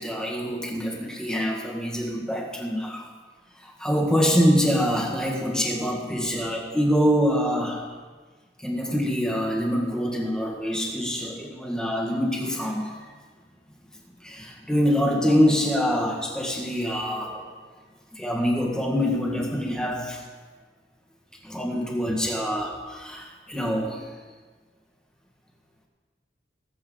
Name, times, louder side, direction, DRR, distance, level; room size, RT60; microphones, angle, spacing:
voice 1, 0.0-3.0 3.6-7.9 8.6-12.9 14.2-17.4 18.1-20.2 21.4-24.0, equal, 5° left, -1 dB, 1.7 m, -25 dB
19.0 x 8.0 x 3.9 m, 1.4 s
head